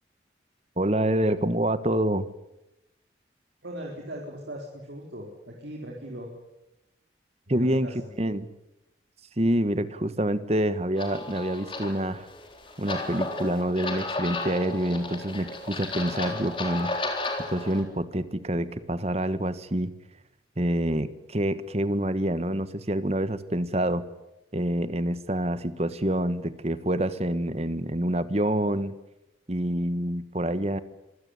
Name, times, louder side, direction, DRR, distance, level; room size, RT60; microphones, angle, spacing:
voice 1, 0.8-2.3 7.5-8.5 9.4-12.3 12.8-16.9 17.5-19.9 20.6-24.0 24.5-28.9 29.5-30.8, right 1 dB, 35° right, 13 dB, 1.4 m, -27 dB
voice 2, 3.6-6.3 7.5-8.1, right 1 dB, 80° right, -1 dB, 4.4 m, -39 dB
sound 1, 11.0-17.8, left 2 dB, 30° left, 3.9 m, -34 dB
26.0 x 17.0 x 9.9 m, 0.92 s
head